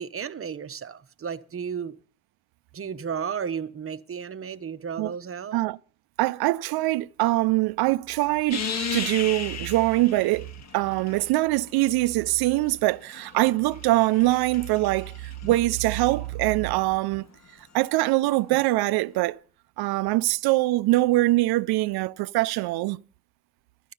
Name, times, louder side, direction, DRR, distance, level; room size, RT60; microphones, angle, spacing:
voice 1, 0.0-1.9 2.7-5.6, right 7 dB, 40° right, 0.9 m, -33 dB
voice 2, 6.2-10.5 10.7-17.3 17.7-19.4 19.8-23.0, right 18 dB, 85° right, 0.5 m, -23 dB
sound 1, 8.5-11.6 12.7-16.2 18.5-18.6, left 6 dB, 45° left, 1.3 m, -36 dB
12.0 x 11.0 x 5.5 m
cardioid pair, 80°, 37 cm